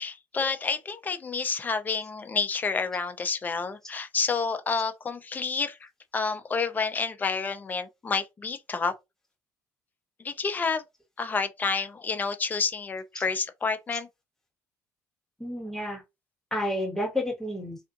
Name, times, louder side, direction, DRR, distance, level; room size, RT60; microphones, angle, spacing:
voice 1, 0.0-8.9 10.2-10.8 11.2-14.1, left 4 dB, 25° left, 0.5 m, -29 dB
voice 2, 15.4-16.0 16.5-17.8, left 1 dB, 5° left, 1.3 m, -30 dB
2.5 x 2.4 x 2.5 m
cardioid pair, 120°, 7 cm